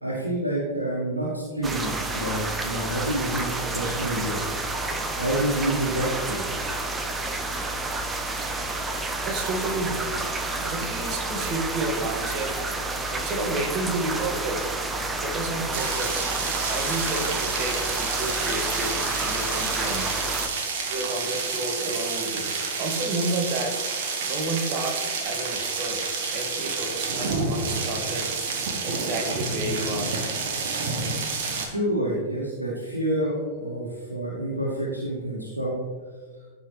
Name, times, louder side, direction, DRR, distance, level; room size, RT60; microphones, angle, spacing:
voice 1, 0.0-4.4 4.8-6.4 31.6-35.8, right 1 dB, 85° right, -6 dB, 1.8 m, -28 dB
sound 1, 1.6-20.5, right 2 dB, 15° right, 0.9 m, -30 dB
voice 2, 9.2-12.5 12.8-14.6 15.2-16.3 16.7-20.2 20.9-22.5 22.8-23.8 24.2-26.0 26.3-28.3 28.8-30.2, right 2 dB, 35° right, 2 dB, 1.9 m, -31 dB
sound 2, 15.7-31.7, right 4 dB, 50° right, 1.5 m, -29 dB
14.5 x 5.6 x 3.3 m, 1.5 s
figure-of-eight pair, 95°, 0 cm